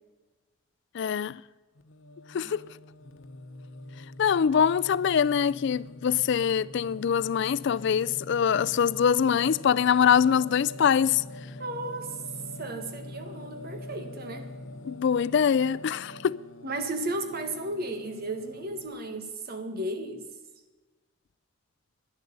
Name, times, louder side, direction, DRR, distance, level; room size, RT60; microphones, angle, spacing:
voice 1, 0.9-1.4 2.3-2.6 4.2-11.2 14.9-16.4, left 7 dB, 65° left, 0.4 m, -24 dB
Singing, 1.7-18.9, left 1 dB, 80° left, 1.1 m, -44 dB
voice 2, 11.6-12.2 12.6-14.5 16.6-20.2, right 2 dB, 50° right, 1.6 m, -34 dB
11.0 x 10.5 x 8.6 m
head